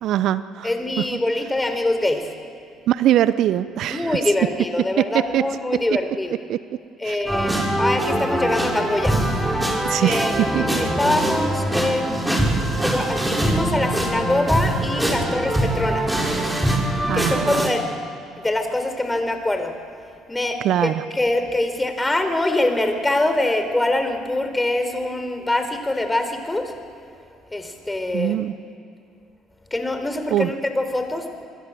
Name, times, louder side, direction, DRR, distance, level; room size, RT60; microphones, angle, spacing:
voice 1, 0.0-0.7 1.0-1.1 2.9-4.2 5.3-5.4 6.5-6.6 7.0-7.2 9.8-10.3 10.5-10.8 17.1-17.6 20.6-21.0 28.1-28.5 30.3-30.5, right 12 dB, 65° right, 14 dB, 0.8 m, -22 dB
voice 2, 0.6-2.3 3.9-6.4 7.0-9.2 10.0-10.4 10.8-12.5 12.8-16.8 17.1-17.8 18.4-19.7 20.3-26.7 27.5-28.4 29.7-31.3, left 2 dB, 15° left, 7 dB, 4.6 m, -24 dB
sound 1, 7.3-17.7, right 1 dB, 5° right, 6.7 m, -23 dB
26.5 x 22.5 x 7.7 m, 2.4 s
hypercardioid pair, 55°, 0 cm